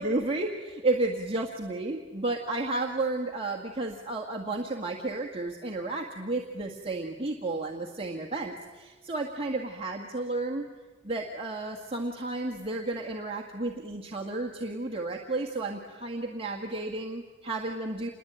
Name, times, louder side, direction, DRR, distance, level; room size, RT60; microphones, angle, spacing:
voice 1, 0.0-10.7 11.0-18.1, right 2 dB, 30° right, 0 dB, 1.8 m, -32 dB
28.0 x 21.0 x 9.1 m, 1.4 s
head